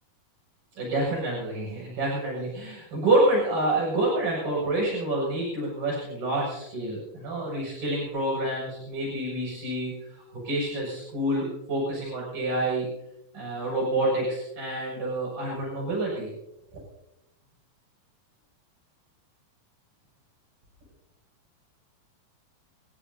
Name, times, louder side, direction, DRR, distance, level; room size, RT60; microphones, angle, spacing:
voice 1, 0.8-12.9 13.3-16.3 16.7-16.8, right 1 dB, 65° right, -4 dB, 8.6 m, -28 dB
29.5 x 15.5 x 2.8 m, 0.86 s
omnidirectional pair, 4.3 m